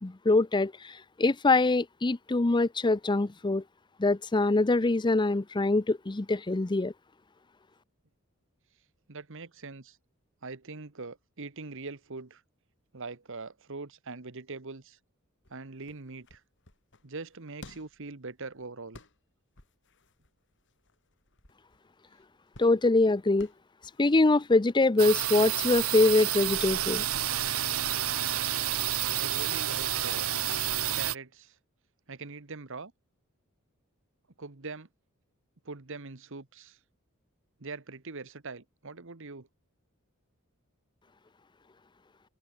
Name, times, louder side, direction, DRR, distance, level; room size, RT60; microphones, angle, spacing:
voice 1, 0.0-3.6 4.0-6.9 22.6-23.5 24.0-27.0, left 2 dB, 20° left, 0.6 m, -24 dB
voice 2, 9.1-10.0 10.4-12.4 12.9-15.0 15.5-16.4 17.0-19.0 29.2-30.3 30.9-31.6 32.1-32.9 34.4-34.9 35.6-36.8 37.6-39.5, right 3 dB, 65° right, 1.4 m, -42 dB
sound 1, 15.4-30.1, left 2 dB, 60° left, 5.8 m, -58 dB
sound 2, 25.0-31.2, right 11 dB, 85° right, 1.8 m, -29 dB
head